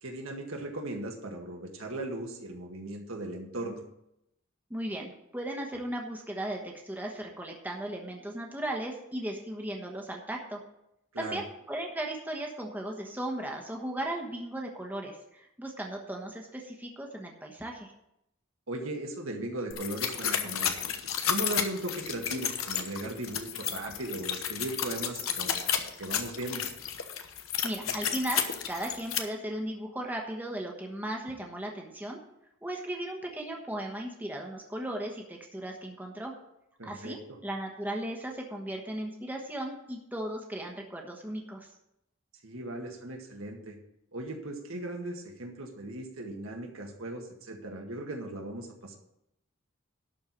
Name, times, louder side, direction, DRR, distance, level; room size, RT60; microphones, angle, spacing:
voice 1, 0.0-3.8 11.1-11.4 18.7-20.7 21.3-25.7 26.0-26.6 36.8-37.2 42.4-43.8 44.1-49.0, right 1 dB, 75° right, 2 dB, 1.8 m, -37 dB
voice 2, 4.7-10.6 11.2-17.9 27.6-32.2 32.6-36.3 36.8-41.7, right 1 dB, 10° right, 1 dB, 1.2 m, -36 dB
sound 1, 19.7-29.2, left 8 dB, 80° left, 1.1 m, -32 dB
12.0 x 4.5 x 8.2 m, 0.81 s
head